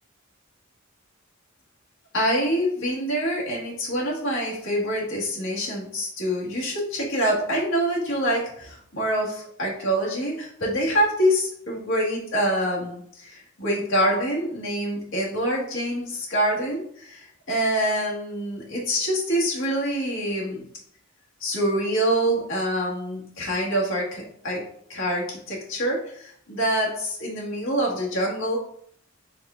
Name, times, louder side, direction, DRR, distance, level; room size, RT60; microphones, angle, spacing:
voice 1, 2.1-20.7 21.4-24.6 24.9-28.6, equal, 65° left, -3 dB, 1.5 m, -25 dB
4.7 x 2.4 x 4.3 m, 0.64 s
head